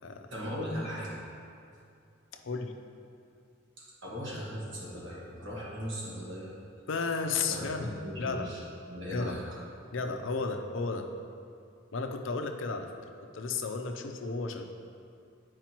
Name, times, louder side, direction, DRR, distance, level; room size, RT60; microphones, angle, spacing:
voice 1, 0.3-1.1 3.8-6.5 7.5-8.6 8.9-9.4, equal, 70° right, -6 dB, 1.6 m, -38 dB
voice 2, 2.4-2.7 6.9-7.9 8.2-8.5 9.1-9.4 9.9-11.1 11.9-13.0 13.3-14.6, left 4 dB, 75° left, 5 dB, 0.5 m, -33 dB
8.8 x 4.8 x 3.0 m, 2.5 s
head